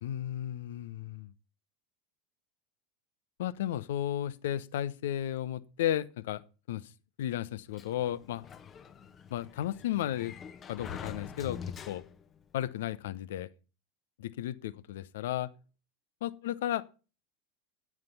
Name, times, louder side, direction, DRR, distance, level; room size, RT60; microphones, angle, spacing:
voice 1, 0.0-1.3 3.4-6.4 6.7-6.9 7.2-8.5 9.3-10.3 10.7-11.6 11.8-12.0 12.5-13.5 14.2-15.5 16.2-16.8, left 12 dB, 65° left, 0.9 m, -34 dB
Sliding door, 7.7-12.4, left 7 dB, 30° left, 1.2 m, -45 dB
9.5 x 9.5 x 5.8 m
figure-of-eight pair, 80°, 0 cm